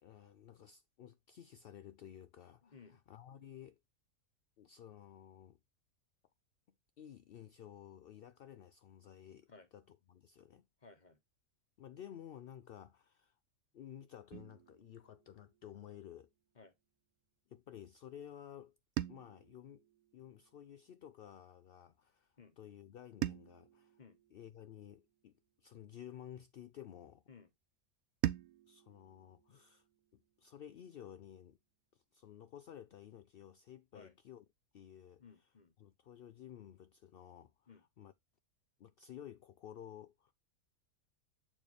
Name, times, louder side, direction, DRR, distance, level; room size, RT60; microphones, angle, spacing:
voice 1, 0.0-3.8 4.6-5.6 7.0-10.7 11.8-13.4 13.7-16.3 17.5-18.8 19.1-19.8 20.1-24.0 24.3-27.2 28.7-29.8 30.1-31.6 31.9-34.5 34.7-35.5 35.8-38.1 38.8-40.3, left 10 dB, 70° left, 0.5 m, -54 dB
voice 2, 2.6-3.0 9.5-9.7 10.8-11.2 16.5-16.7 22.4-22.6 24.0-24.2 27.3-27.5 33.9-34.1 35.2-35.7 37.7-37.8, left 4 dB, 35° left, 1.2 m, -58 dB
sound 1, 14.3-16.5 19.0-21.3 23.2-25.7 28.2-30.8, right 14 dB, 80° right, 1.0 m, -45 dB
8.5 x 4.5 x 3.1 m
omnidirectional pair, 1.5 m